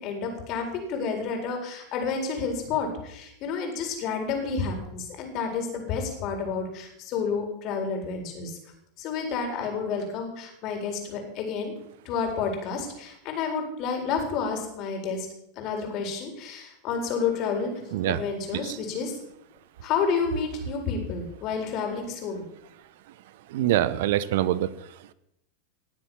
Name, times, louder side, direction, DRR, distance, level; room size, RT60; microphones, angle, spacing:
voice 1, 0.0-8.6 9.0-11.7 12.0-15.3 15.6-17.7 18.1-19.1 19.8-22.5, left 5 dB, 45° left, 3 dB, 4.3 m, -30 dB
voice 2, 23.5-24.7, right 13 dB, 60° right, 18 dB, 0.9 m, -24 dB
19.0 x 7.4 x 7.3 m, 0.80 s
figure-of-eight pair, 85°, 0 cm